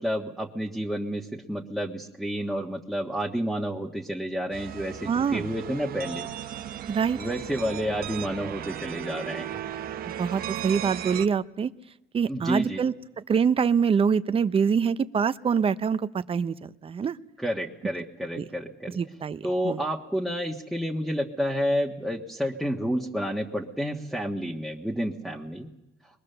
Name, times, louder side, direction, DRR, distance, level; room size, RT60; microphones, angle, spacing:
voice 1, 0.0-6.3 7.2-9.6 12.3-12.8 17.4-19.0 19.4-25.7, equal, ahead, -2 dB, 1.5 m, -30 dB
sound 1, 4.5-11.3, right 10 dB, 60° right, 1.0 m, -36 dB
voice 2, 5.1-5.5 6.9-7.2 10.2-11.7 12.1-12.9 13.3-17.2 18.4-18.5 18.9-19.8, right 6 dB, 35° right, 13 dB, 0.8 m, -25 dB
23.0 x 22.5 x 6.8 m, 0.95 s
cardioid pair, 110°, 17 cm